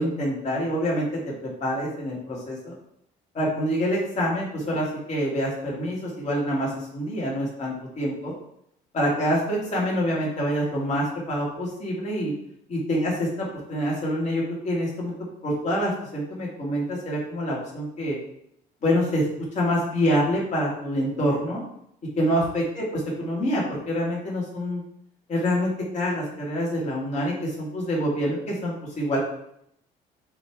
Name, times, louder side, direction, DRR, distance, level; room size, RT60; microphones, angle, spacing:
voice 1, 0.0-2.8 3.3-8.3 8.9-12.3 12.7-15.1 15.4-18.2 18.8-19.2 19.5-21.6 22.2-24.8 25.3-29.2, equal, 45° left, -4 dB, 2.5 m, -26 dB
8.6 x 3.3 x 3.7 m, 0.74 s
cardioid pair, 110°, 17 cm